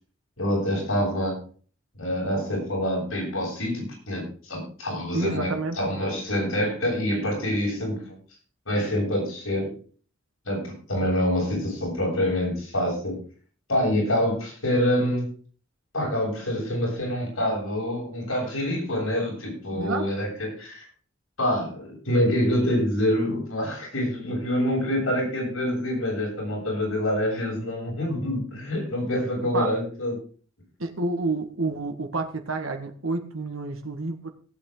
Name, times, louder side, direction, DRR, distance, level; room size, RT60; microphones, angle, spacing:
voice 1, 0.4-1.4 2.0-8.2 8.7-9.7 10.4-13.2 13.7-15.3 15.9-20.8 21.4-30.2, left 1 dB, 80° left, -1 dB, 7.7 m, -26 dB
voice 2, 5.1-5.8 19.8-20.1 29.5-29.7 30.8-34.3, right 3 dB, 90° right, 5 dB, 1.8 m, -29 dB
18.0 x 8.7 x 3.9 m, 0.41 s
head